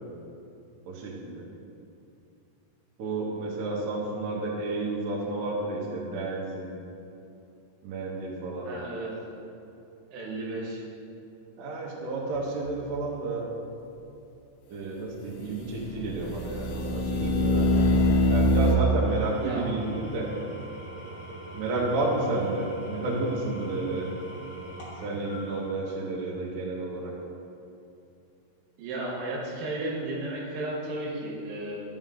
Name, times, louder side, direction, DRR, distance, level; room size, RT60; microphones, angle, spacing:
voice 1, 0.9-1.4 3.0-6.7 7.8-8.7 11.6-13.4 14.7-20.3 21.5-24.1 25.0-27.1, right 2 dB, 85° right, -3 dB, 1.8 m, -31 dB
voice 2, 8.6-9.1 10.1-10.8 19.4-19.6 28.8-31.8, right 2 dB, 65° right, -3 dB, 2.8 m, -33 dB
sound 1, 12.4-12.5 15.8-18.8, left 1 dB, 80° left, 2.4 m, -23 dB
Engine / Tools, 18.8-26.3, right 1 dB, 60° left, 2.3 m, -43 dB
11.5 x 6.1 x 3.8 m, 2.7 s
omnidirectional pair, 5.4 m